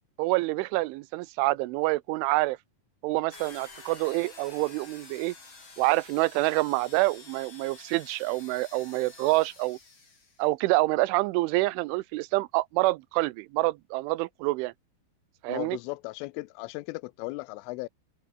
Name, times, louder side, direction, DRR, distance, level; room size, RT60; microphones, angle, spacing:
voice 1, 0.2-2.6 3.0-5.3 5.8-9.8 10.4-14.7 15.4-15.8, right 21 dB, 85° right, 3.1 m, -27 dB
sound 1, 3.3-10.4, left 4 dB, 25° left, 4.9 m, -49 dB
voice 2, 15.5-17.9, left 22 dB, 90° left, 3.2 m, -36 dB
omnidirectional pair, 5.6 m